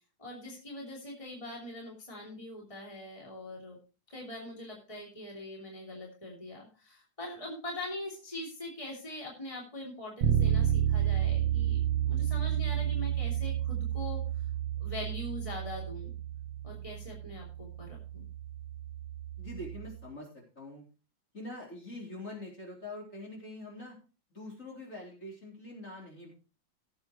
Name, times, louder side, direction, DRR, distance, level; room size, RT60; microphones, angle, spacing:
voice 1, 0.2-3.8 4.1-14.3 14.8-16.1 16.6-18.3, left 1 dB, 15° left, -2 dB, 3.0 m, -42 dB
Bass guitar, 10.2-20.0, right 10 dB, 75° right, 1.6 m, -31 dB
voice 2, 19.4-20.8 21.3-24.0 24.3-26.3, left 1 dB, 40° left, -3 dB, 4.1 m, -44 dB
17.5 x 8.0 x 3.1 m, 0.33 s
omnidirectional pair, 2.2 m